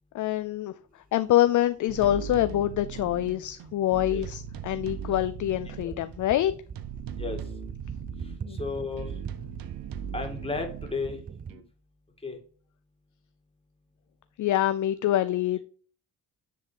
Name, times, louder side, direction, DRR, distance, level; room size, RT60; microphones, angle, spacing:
voice 1, 0.1-0.7 1.1-6.5 8.5-8.6 14.4-15.6, left 13 dB, 50° left, 12 dB, 0.5 m, -25 dB
sound 1, 1.7-1.8 2.1-11.5, right 6 dB, 25° right, 0.4 m, -43 dB
sound 2, 1.9-6.3 6.7-8.4 9.0-11.6, right 7 dB, 60° right, 0.9 m, -39 dB
voice 2, 8.2-9.1 10.1-11.2 11.5-11.6 12.2-12.4, left 4 dB, 15° left, 3 dB, 2.2 m, -34 dB
9.9 x 3.6 x 3.4 m, 0.44 s
supercardioid pair, 80°, 40 cm